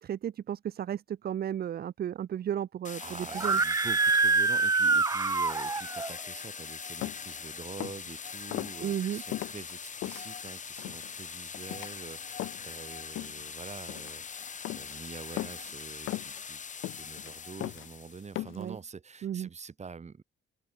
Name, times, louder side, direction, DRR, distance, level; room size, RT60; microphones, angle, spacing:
voice 1, 0.1-3.6 8.8-9.2 18.6-18.8 19.2-19.5, right 10 dB, 50° right, 0.7 m, -34 dB
sound 1, 2.8-18.3, left 6 dB, 40° left, 1.7 m, -42 dB
voice 2, 3.0-16.6 17.0-20.2, right 5 dB, 35° right, 3.3 m, -46 dB
Screaming, 3.3-6.1, right 4 dB, 15° right, 0.5 m, -25 dB
sound 2, 7.0-7.3 7.7-8.1 8.5-8.7 9.3-10.2 10.8-11.1 11.5-11.9 12.4-12.8 13.2-13.5 13.8-14.2 14.6-15.0 15.4-15.7 16.1-16.4 16.8-17.3 17.6-17.9 18.4-18.7, left 16 dB, 85° left, 1.0 m, -37 dB
cardioid pair, 90°, 20 cm